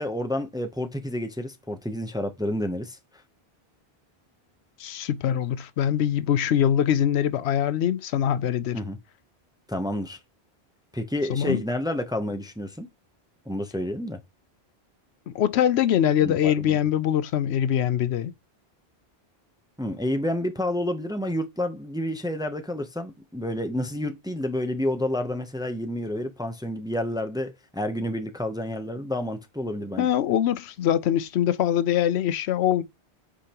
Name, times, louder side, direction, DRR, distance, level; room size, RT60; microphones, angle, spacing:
voice 1, 0.0-3.0 8.7-9.0 9.7-10.2 10.9-12.9 13.5-14.2 16.2-16.5 19.8-30.1, left 1 dB, 5° right, 0.6 m, -29 dB
voice 2, 4.8-8.8 11.3-11.6 15.3-18.3 30.0-32.8, left 10 dB, 90° left, 0.9 m, -23 dB
8.4 x 5.0 x 2.9 m
omnidirectional pair, 1.1 m